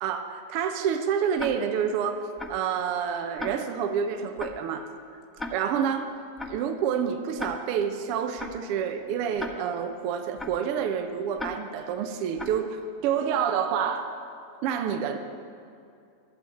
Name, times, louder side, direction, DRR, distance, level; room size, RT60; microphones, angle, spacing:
voice 1, 0.0-4.9 5.5-6.1 6.5-14.1 14.6-15.2, right 7 dB, 45° right, 6 dB, 1.1 m, -28 dB
Tick-tock, 1.4-1.5 2.4-2.5 3.4-3.5 4.4-4.5 5.4-5.5 6.4-6.5 7.4-7.5 8.4-8.5 9.4-9.5 10.4-10.5 11.4-11.5 12.4-12.5, left 2 dB, 10° left, 1.5 m, -35 dB
13.5 x 8.1 x 9.5 m, 2.5 s
figure-of-eight pair, 90°, 0 cm